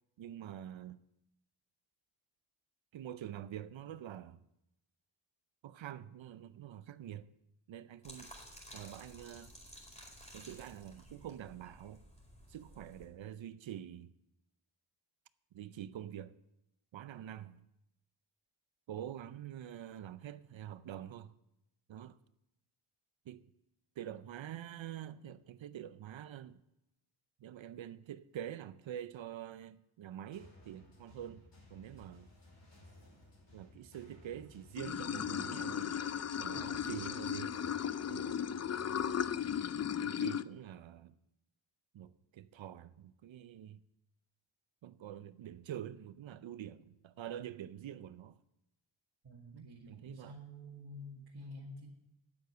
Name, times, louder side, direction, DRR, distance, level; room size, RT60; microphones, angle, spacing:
voice 1, 0.2-1.0 2.9-4.4 5.6-7.3 7.7-8.3 8.7-9.5 10.3-12.0 12.5-14.2 15.5-16.4 16.9-17.7 18.9-21.3 21.9-22.2 23.3-23.5 24.0-26.6 27.4-31.4 31.7-32.3 33.5-36.0 36.4-37.6 38.1-38.5 40.0-41.2 41.9-43.8 44.8-48.4 49.5-50.4, right 11 dB, 70° right, 0.6 m, -46 dB
sound 1, 8.0-13.1, equal, 15° left, 4.6 m, -54 dB
sound 2, 30.3-39.9, left 1 dB, 60° left, 5.3 m, -59 dB
Water / Sink (filling or washing), 34.8-40.4, left 8 dB, 35° left, 0.4 m, -36 dB
voice 2, 36.5-36.9 49.2-51.9, equal, 50° right, 2.0 m, -49 dB
9.4 x 8.0 x 7.8 m
cardioid pair, 50°, 48 cm